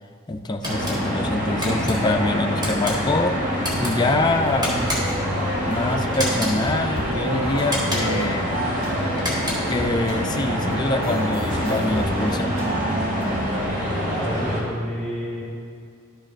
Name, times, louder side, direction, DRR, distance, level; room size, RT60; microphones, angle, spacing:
voice 1, 0.3-5.2 5.7-8.6 9.7-12.5, left 2 dB, 20° left, 6 dB, 0.4 m, -25 dB
sound 1, 0.6-1.0 1.6-1.9 2.6-3.0 3.6-3.9 4.6-5.2 6.1-6.6 7.6-8.2 9.1-9.8, equal, 20° right, 2.3 m, -29 dB
sound 2, 0.6-14.6, equal, 40° right, 2.0 m, -26 dB
sound 3, 4.0-13.7, right 1 dB, 75° right, 1.6 m, -32 dB
voice 2, 14.0-15.4, equal, ahead, -10 dB, 2.0 m, -29 dB
12.5 x 7.2 x 2.5 m, 2.2 s
head